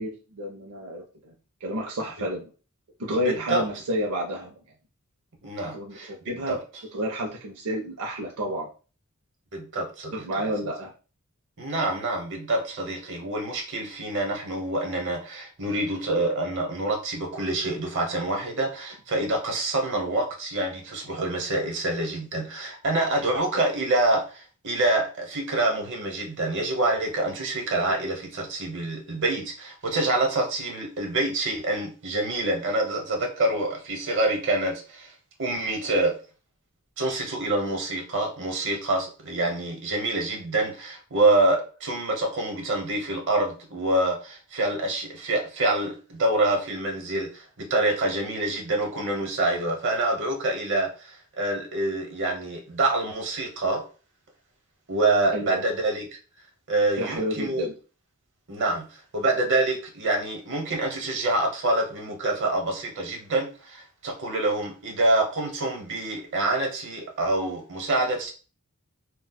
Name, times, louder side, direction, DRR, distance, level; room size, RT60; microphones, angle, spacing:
voice 1, 0.0-1.3 1.6-2.5 3.0-4.6 5.6-6.6 6.9-8.7 10.1-10.9 55.3-55.6 56.9-57.7, equal, 85° right, 0 dB, 0.5 m, -30 dB
voice 2, 3.2-3.6 5.4-6.1 6.5-6.6 9.5-10.5 11.6-35.1 35.4-36.1 37.0-53.8 54.9-56.0 56.7-57.7 58.5-68.3, right 2 dB, 55° right, 1 dB, 0.9 m, -26 dB
4.0 x 2.2 x 2.2 m, 0.35 s
head